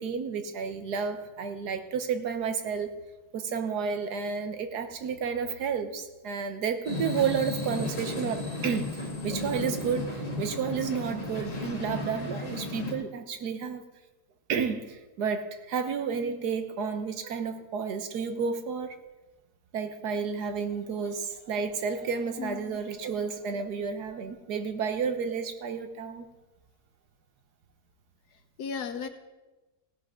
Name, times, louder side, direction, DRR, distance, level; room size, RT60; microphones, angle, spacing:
voice 1, 0.0-2.9 3.3-13.8 14.5-18.9 19.7-26.3, right 6 dB, 80° right, 8 dB, 1.5 m, -31 dB
sound 1, 6.8-12.9, left 2 dB, 25° left, 1.7 m, -34 dB
voice 2, 22.4-22.8 28.6-29.1, left 6 dB, 75° left, 8 dB, 1.5 m, -35 dB
16.0 x 11.0 x 3.7 m, 1.1 s
omnidirectional pair, 1.7 m